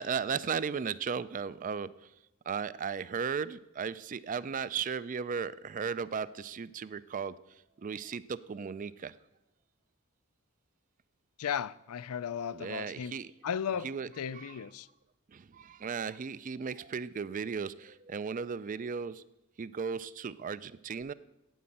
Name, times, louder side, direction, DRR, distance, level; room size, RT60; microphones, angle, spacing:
voice 1, 0.0-2.1 2.5-7.3 7.8-9.1 12.5-13.3 13.8-14.1 14.3-14.5 15.3-19.2 19.6-21.1, right 6 dB, 35° right, 0.4 m, -36 dB
voice 2, 11.4-13.1 13.4-13.9 14.2-14.9, left 8 dB, 85° left, 0.4 m, -35 dB
9.3 x 8.6 x 8.5 m
head